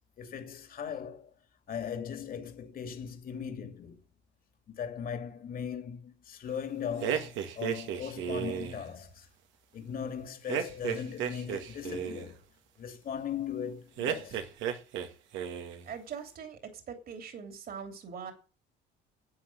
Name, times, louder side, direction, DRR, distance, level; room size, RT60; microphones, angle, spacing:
voice 1, 0.2-1.3 1.7-4.0 4.7-9.3 9.7-12.4 12.8-14.4, left 8 dB, 50° left, 2.7 m, -38 dB
sound 1, 7.0-8.9 10.5-12.3 14.0-15.1 15.3-15.9, right 9 dB, 80° right, 1.9 m, -34 dB
voice 2, 15.8-18.3, right 7 dB, 50° right, 3.2 m, -42 dB
11.5 x 8.2 x 7.5 m
cardioid pair, 115°, 20 cm